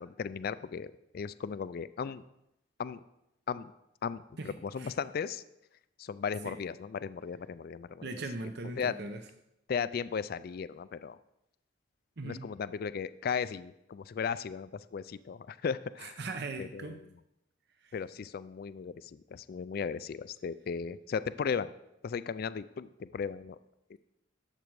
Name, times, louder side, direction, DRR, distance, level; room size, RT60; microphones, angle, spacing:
voice 1, 0.0-2.2 2.8-3.0 3.5-3.7 4.0-5.4 6.0-8.1 8.8-8.9 9.7-11.2 12.2-16.2 16.6-17.0 17.9-21.7 22.0-23.6 23.9-24.0, left 6 dB, 50° left, 15 dB, 0.3 m, -36 dB
voice 2, 4.4-4.9 6.4-6.6 8.0-9.2 12.2-12.5 16.0-17.0 17.8-17.9, right 3 dB, 60° right, 6 dB, 0.8 m, -40 dB
12.0 x 7.6 x 4.7 m, 0.85 s
head